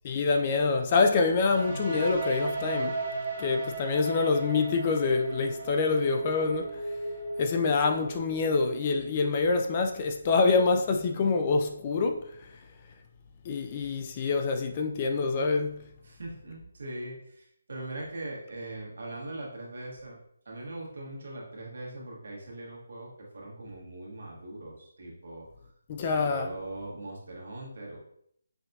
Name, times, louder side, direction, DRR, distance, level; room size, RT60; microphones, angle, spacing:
voice 1, 0.0-3.0 3.4-6.8 7.4-12.5 13.4-15.8 25.9-26.5, left 4 dB, 30° left, 0.3 m, -26 dB
sound 1, 1.4-9.2, right 2 dB, 30° right, 1.4 m, -35 dB
voice 2, 16.0-20.2 20.4-25.5 26.1-28.0, right 2 dB, 70° right, 1.3 m, -41 dB
5.6 x 2.7 x 2.3 m
hypercardioid pair, 165°, 0 cm